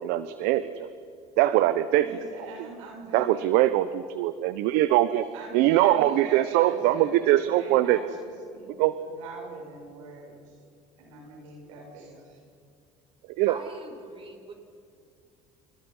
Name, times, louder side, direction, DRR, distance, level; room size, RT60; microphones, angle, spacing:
voice 1, 0.0-0.9 1.4-2.1 3.1-5.2 5.5-8.0 8.8-8.9 13.4-13.5, right 14 dB, 75° right, 13 dB, 1.0 m, -22 dB
voice 2, 1.9-3.4 5.3-8.7 9.0-10.4 11.0-12.4, right 3 dB, 90° right, 1 dB, 7.3 m, -42 dB
voice 3, 13.5-14.5, right 3 dB, 35° right, 1 dB, 5.7 m, -42 dB
29.5 x 29.5 x 5.6 m, 2.4 s
supercardioid pair, 80°, 16 cm